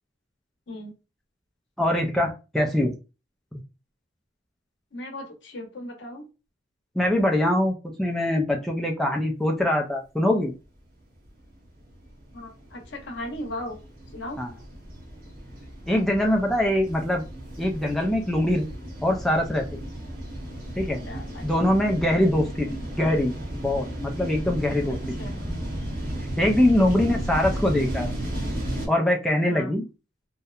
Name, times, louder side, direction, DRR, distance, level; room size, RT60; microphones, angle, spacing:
voice 1, 1.8-2.9 3.5-3.6 7.0-10.5 14.4-14.5 15.9-17.2 17.6-18.7 19.0-19.6 20.8-21.0 21.4-25.0 26.4-28.1 28.9-29.9, left 1 dB, ahead, 0 dB, 0.3 m, -23 dB
voice 2, 4.9-6.3 12.3-13.8 14.1-14.4 21.1-21.4 25.2-25.5 29.4-29.7, left 1 dB, 70° left, 3 dB, 0.7 m, -37 dB
sound 1, 11.1-28.9, equal, 50° right, 1.0 m, -34 dB
2.7 x 2.1 x 2.3 m, 0.30 s
head